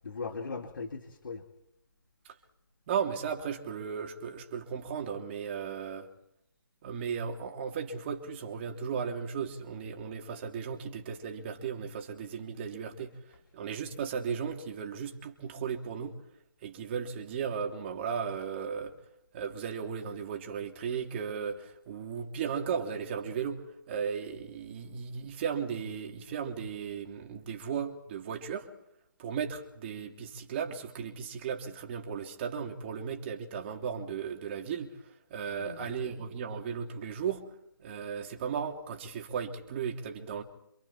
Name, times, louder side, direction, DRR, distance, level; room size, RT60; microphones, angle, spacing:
voice 1, 0.0-1.4 13.3-13.4 35.6-36.2, left 4 dB, 65° left, 2.4 m, -39 dB
voice 2, 2.9-6.1 6.8-13.1 13.5-16.2 16.6-18.9 19.3-28.7 29.2-34.9 35.3-37.4 37.8-40.4, right 7 dB, 30° right, 3.0 m, -36 dB
29.0 x 26.5 x 4.3 m
figure-of-eight pair, 150°, 11 cm